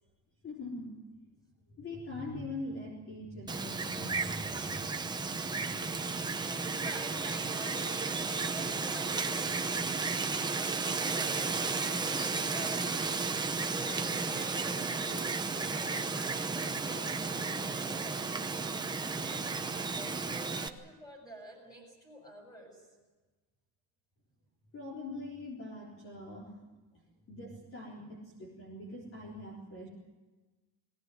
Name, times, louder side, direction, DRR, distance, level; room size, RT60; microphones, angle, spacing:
voice 1, 0.4-0.9 1.8-4.8 24.7-26.5 27.3-29.9, left 2 dB, 30° left, -3 dB, 4.0 m, -42 dB
Wind, 3.5-20.7, right 4 dB, 10° right, 0.8 m, -33 dB
voice 2, 5.6-13.0 13.7-22.9, right 1 dB, 10° left, 2 dB, 7.0 m, -49 dB
21.0 x 18.0 x 9.3 m, 1.2 s
cardioid pair, 175°, 42 cm